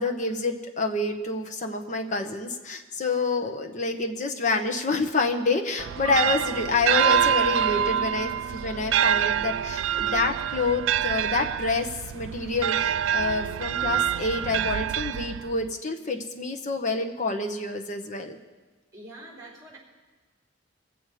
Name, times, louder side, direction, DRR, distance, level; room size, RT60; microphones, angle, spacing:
voice 1, 0.0-18.4, left 3 dB, 40° left, 3 dB, 1.1 m, -28 dB
sound 1, 5.8-15.7, right 9 dB, 80° right, 0.3 m, -26 dB
voice 2, 18.9-19.8, right 1 dB, 20° right, -2 dB, 3.9 m, -45 dB
22.0 x 7.7 x 5.0 m, 1.3 s
head